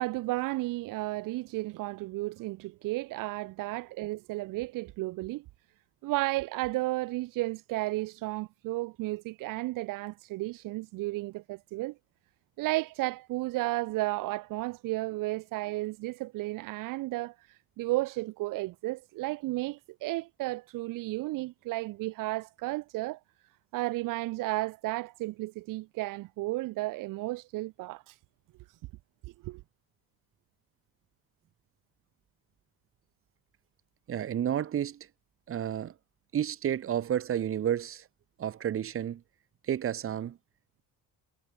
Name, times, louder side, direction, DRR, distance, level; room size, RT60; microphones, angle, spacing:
voice 1, 0.0-5.4 6.0-11.9 12.6-23.2 23.7-28.2 29.4-29.6, right 20 dB, 70° right, 1.4 m, -33 dB
voice 2, 34.1-35.1 35.5-35.9 36.3-38.1 38.4-39.2 39.6-40.4, right 10 dB, 40° right, 3.9 m, -31 dB
cardioid pair, 150°, 34 cm